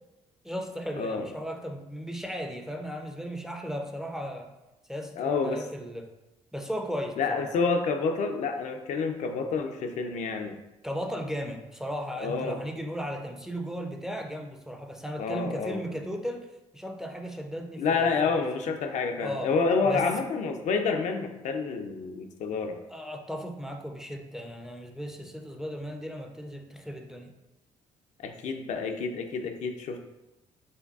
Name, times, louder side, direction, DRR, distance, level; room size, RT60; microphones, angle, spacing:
voice 1, 0.4-4.5 4.9-6.1 6.5-7.5 10.8-16.5 16.7-18.7 19.2-19.5 19.8-20.1 22.9-27.3, equal, 5° right, 3 dB, 0.4 m, -36 dB
voice 2, 1.0-1.3 5.2-5.6 7.2-10.6 12.2-12.6 15.2-15.8 17.8-22.8 28.2-30.0, left 4 dB, 65° left, 5 dB, 0.4 m, -28 dB
5.0 x 2.3 x 2.3 m, 0.97 s
cardioid pair, 85°, 13 cm